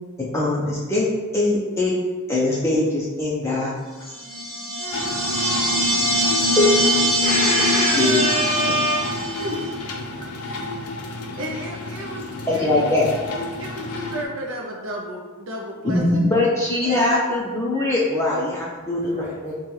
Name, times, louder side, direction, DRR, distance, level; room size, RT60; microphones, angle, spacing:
voice 1, 0.2-1.1 1.3-1.9 2.3-3.7 6.6-6.7 8.0-8.1 12.5-13.1 15.8-19.5, left 2 dB, 10° left, -5 dB, 0.4 m, -21 dB
sound 1, 4.2-9.6, equal, 5° right, 1.0 m, -22 dB
voice 2, 4.8-6.2 9.4-9.6 10.4-10.7 11.4-12.6 13.6-16.3 16.8-17.2, right 1 dB, 65° right, -1 dB, 0.4 m, -33 dB
sound 2, 4.9-14.2, left 2 dB, 80° left, 0.5 m, -32 dB
voice 3, 7.2-9.0 19.0-19.3, equal, 35° right, -7 dB, 1.3 m, -24 dB
5.3 x 2.2 x 3.0 m, 1.4 s
head